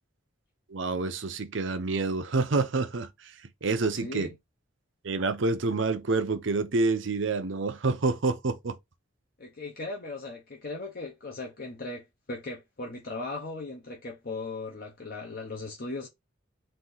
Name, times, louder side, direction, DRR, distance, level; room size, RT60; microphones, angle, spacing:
voice 1, 0.7-3.1 3.6-4.3 5.0-8.8, right 3 dB, 70° right, 0.7 m, -27 dB
voice 2, 3.9-4.3 9.4-16.1, left 3 dB, 50° left, 0.9 m, -38 dB
4.3 x 2.7 x 3.9 m
head